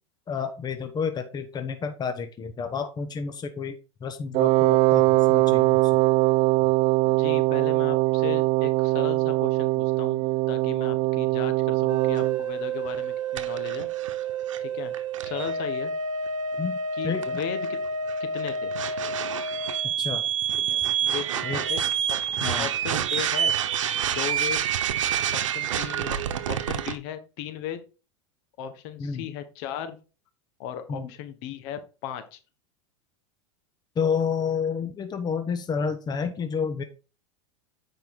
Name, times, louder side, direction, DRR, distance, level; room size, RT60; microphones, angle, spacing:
voice 1, 0.3-6.0 16.6-16.8 17.0-17.4 19.8-20.2 21.4-21.6 22.4-22.7 29.0-29.3 30.9-31.1 33.9-36.8, left 6 dB, 25° left, 8 dB, 1.2 m, -30 dB
Wind instrument woodwind instrument, 4.3-12.4, right 20 dB, 45° right, 0.4 m, -22 dB
voice 2, 7.0-13.9 14.6-14.9 15.2-15.9 17.0-17.8 18.2-18.7 20.6-21.3 21.5-21.8 22.1-23.5 24.0-24.6 25.3-26.2 26.5-27.8 28.6-30.0 30.6-32.4, left 10 dB, 60° left, 9 dB, 1.5 m, -36 dB
sound 1, 11.9-27.0, right 7 dB, 80° right, 1.0 m, -28 dB
8.9 x 5.3 x 3.8 m, 0.33 s
hypercardioid pair, 100°, 16 cm